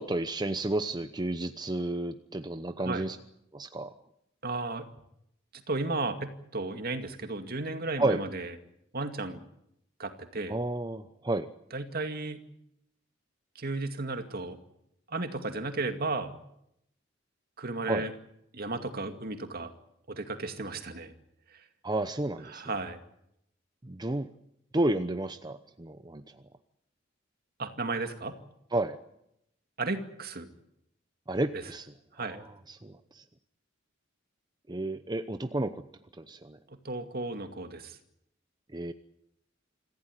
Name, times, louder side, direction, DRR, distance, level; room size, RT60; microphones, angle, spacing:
voice 1, 0.0-3.2 3.5-3.9 8.0-8.2 10.5-11.5 17.9-18.1 21.8-22.6 23.8-24.3 24.7-26.3 28.7-29.0 31.3-31.9 32.2-33.2 34.7-35.8 36.2-36.6 38.7-38.9, right 2 dB, 20° right, 9 dB, 0.8 m, -31 dB
voice 2, 4.4-4.9 5.7-8.5 8.9-9.5 10.0-10.5 11.7-12.4 13.6-14.6 15.1-16.3 17.6-18.1 18.5-19.7 20.1-21.1 21.5-21.6 22.5-23.0 27.6-28.4 29.8-30.5 31.5-31.6 32.1-32.4 36.7-38.0, right 3 dB, 50° right, 7 dB, 2.3 m, -34 dB
26.5 x 15.5 x 9.8 m, 0.79 s
head